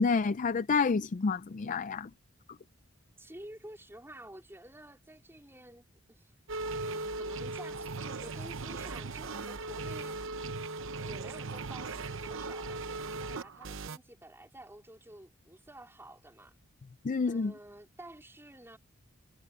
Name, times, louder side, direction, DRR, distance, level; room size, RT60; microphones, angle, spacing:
voice 1, 0.0-2.1 17.0-17.5, left 4 dB, 40° left, 0.4 m, -28 dB
voice 2, 3.2-5.8 6.1-6.3 6.7-10.6 11.0-16.5 17.2-18.8, right 1 dB, 10° right, 4.0 m, -51 dB
sound 1, 6.5-14.0, right 3 dB, 65° right, 0.9 m, -38 dB
head